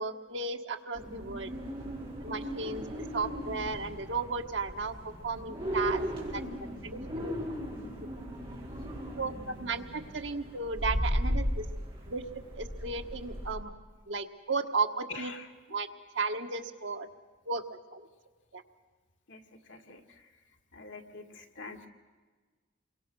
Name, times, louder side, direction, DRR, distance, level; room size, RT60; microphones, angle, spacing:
voice 1, 0.0-1.5 2.2-2.8 3.1-4.9 5.2-6.0 6.3-6.4 6.8-7.3 9.2-11.6 12.1-12.2 12.6-13.7 14.1-15.3 15.7-15.9 16.1-17.1 17.5-18.1 18.5-18.6, right 4 dB, 90° right, 5 dB, 1.5 m, -34 dB
sound 1, 0.9-13.5, equal, 30° right, 5.0 m, -36 dB
voice 2, 15.1-15.5 19.3-20.2 20.7-21.9, left 4 dB, 85° left, 3 dB, 2.1 m, -46 dB
28.5 x 23.5 x 6.3 m, 1.4 s
head